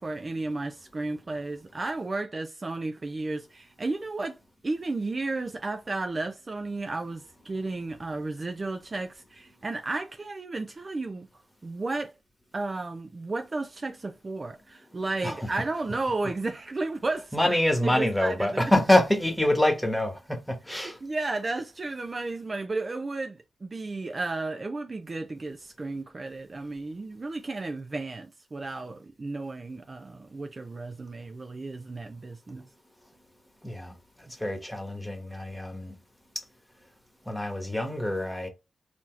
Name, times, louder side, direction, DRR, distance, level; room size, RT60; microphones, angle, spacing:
voice 1, 0.0-4.4 4.6-12.1 12.5-17.6 17.8-18.5 20.7-32.7, right 3 dB, 35° right, 0.5 m, -33 dB
voice 2, 17.3-21.0 33.6-33.9 34.4-35.9 37.3-38.5, left 1 dB, 5° left, 1.3 m, -25 dB
4.2 x 2.8 x 4.4 m
cardioid pair, 75°, 0 cm